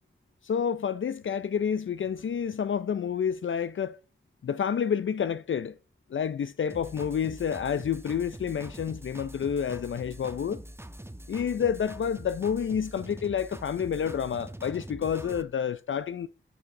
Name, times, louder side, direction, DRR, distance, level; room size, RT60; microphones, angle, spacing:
voice 1, 0.4-4.0 4.4-5.7 6.1-10.6 11.3-16.3, left 7 dB, 65° left, 0.5 m, -29 dB
sound 1, 6.7-15.4, right 1 dB, 10° right, 1.2 m, -44 dB
12.5 x 6.7 x 5.9 m
cardioid pair, 45°, 21 cm